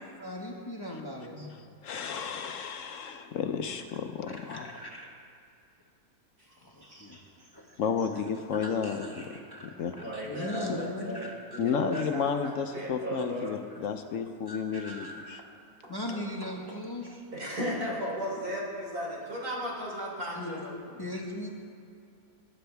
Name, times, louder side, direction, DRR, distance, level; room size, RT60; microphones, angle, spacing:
voice 1, 0.2-1.7 4.3-5.1 6.5-7.2 7.5-7.8 8.1-11.6 11.9-12.0 14.5-15.4 15.9-17.2 20.3-21.5, left 1 dB, 15° left, -2 dB, 1.3 m, -39 dB
voice 2, 1.8-4.7 7.8-9.3 9.6-9.9 11.6-15.4, left 6 dB, 65° left, 7 dB, 1.0 m, -32 dB
voice 3, 6.8-7.5 9.8-13.6 15.8-15.9 17.3-20.7, equal, 85° right, -4 dB, 3.8 m, -36 dB
21.0 x 10.0 x 3.4 m, 2.5 s
omnidirectional pair, 1.6 m